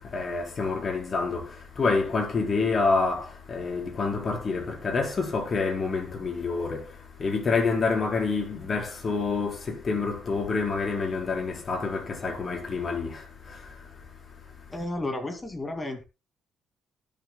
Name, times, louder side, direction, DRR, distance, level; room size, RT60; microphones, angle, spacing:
voice 1, 0.0-13.8, left 4 dB, 40° left, 4.5 m, -28 dB
voice 2, 14.7-16.0, left 2 dB, 20° left, 2.3 m, -32 dB
19.0 x 7.5 x 2.2 m
cardioid pair, 90°, 0 cm